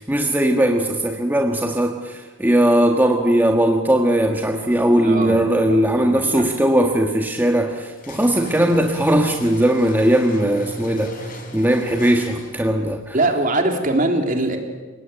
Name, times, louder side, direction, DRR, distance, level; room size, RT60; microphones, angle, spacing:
voice 1, 0.0-13.2, right 1 dB, 10° right, 2 dB, 1.6 m, -19 dB
voice 2, 5.0-5.4 6.0-6.2 13.1-14.6, right 2 dB, 40° right, 4 dB, 3.4 m, -21 dB
sound 1, 8.0-12.7, equal, 40° left, 5.4 m, -37 dB
29.5 x 19.0 x 9.2 m, 1.4 s
head